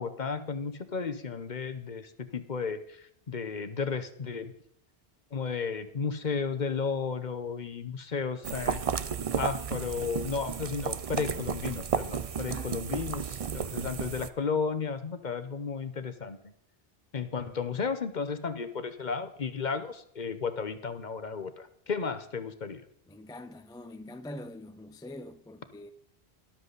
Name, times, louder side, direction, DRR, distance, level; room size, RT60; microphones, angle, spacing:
voice 1, 0.0-4.5 5.3-8.8 9.4-16.4 17.1-22.8, left 5 dB, 50° left, 1.0 m, -33 dB
sound 1, 8.4-14.3, right 7 dB, 45° right, 0.5 m, -33 dB
voice 2, 12.5-12.8 23.1-25.9, left 1 dB, 5° left, 0.4 m, -44 dB
13.0 x 12.0 x 4.0 m
omnidirectional pair, 1.0 m